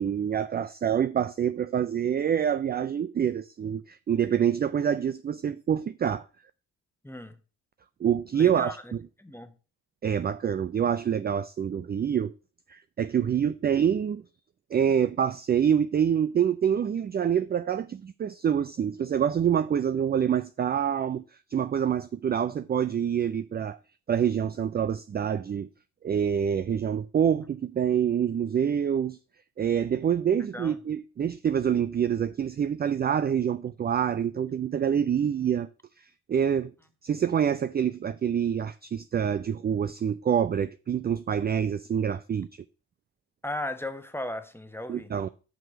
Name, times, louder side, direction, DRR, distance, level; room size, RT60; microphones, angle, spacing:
voice 1, 0.0-6.3 8.0-9.0 10.0-12.3 12.7-14.2 14.7-21.2 21.5-23.8 24.1-25.7 26.0-29.2 29.6-35.7 36.3-36.7 37.0-42.5 44.9-45.3, right 8 dB, 25° right, 0.3 m, -26 dB
voice 2, 7.0-7.4 8.3-8.9 9.2-9.5 30.5-30.8 43.4-45.1, left 1 dB, 5° left, 1.2 m, -36 dB
5.9 x 4.8 x 6.6 m
hypercardioid pair, 45°, 45 cm